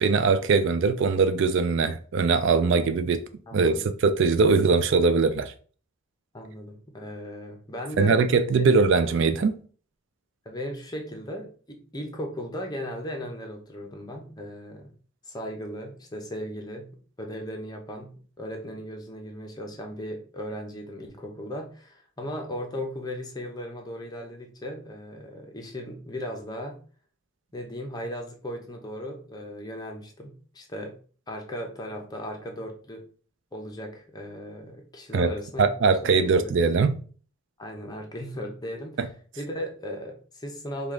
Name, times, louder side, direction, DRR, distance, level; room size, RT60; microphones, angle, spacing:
voice 1, 0.0-3.2 3.5-3.7 4.0-5.5 8.0-9.6 35.1-35.3 35.6-36.9 39.0-39.1, right 4 dB, 55° right, 0.3 m, -21 dB
voice 2, 3.5-3.9 6.3-8.2 10.4-14.9 15.3-16.9 17.2-26.8 27.5-30.9 31.3-33.0 33.5-35.7 36.0-36.5 37.6-39.1 39.4-40.9, equal, 15° left, 0.8 m, -37 dB
5.0 x 2.4 x 3.7 m
head